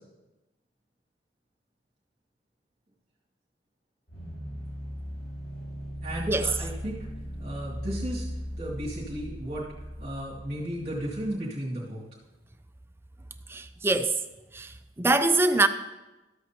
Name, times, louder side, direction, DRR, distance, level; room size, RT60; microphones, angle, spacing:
sound 1, 4.1-11.3, equal, 60° left, 2.6 m, -38 dB
voice 1, 6.0-7.1 7.4-8.3 8.5-9.7 10.0-12.0, right 1 dB, 35° right, 2.0 m, -34 dB
voice 2, 13.5-14.2 14.5-15.7, right 2 dB, 15° right, 0.4 m, -24 dB
13.0 x 8.0 x 2.9 m
head